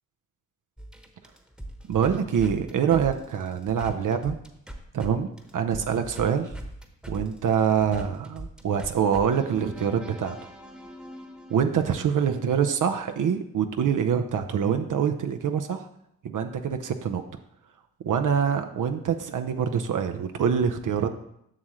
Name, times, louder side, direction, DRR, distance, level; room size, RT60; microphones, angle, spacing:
sound 1, 0.8-5.1 5.4-12.6, right 1 dB, ahead, 1.2 m, -41 dB
voice 1, 1.9-4.4 4.9-5.3 5.5-6.5 7.1-10.4 11.5-15.9 16.2-17.2 18.0-21.2, right 7 dB, 60° right, 6 dB, 0.7 m, -25 dB
7.6 x 6.3 x 3.1 m, 0.75 s
supercardioid pair, 50°, 36 cm